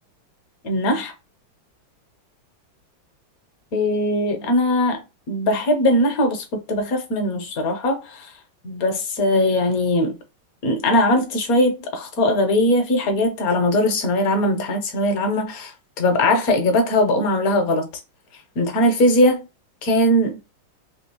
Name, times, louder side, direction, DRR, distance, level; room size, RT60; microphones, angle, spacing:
voice 1, 0.6-1.1 3.7-8.3 8.6-10.2 10.6-17.9 18.6-19.4 19.8-20.4, left 1 dB, 55° left, 1.1 m, -20 dB
3.6 x 2.8 x 2.9 m
omnidirectional pair, 2.2 m